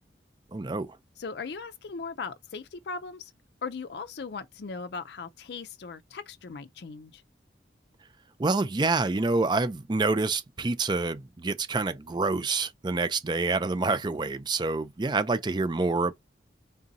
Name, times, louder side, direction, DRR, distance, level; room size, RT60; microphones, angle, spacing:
voice 1, 0.5-0.9 8.4-16.1, right 3 dB, 25° right, 0.4 m, -27 dB
voice 2, 1.2-3.3 3.6-7.2, left 4 dB, 65° left, 0.5 m, -38 dB
3.6 x 2.6 x 4.0 m
head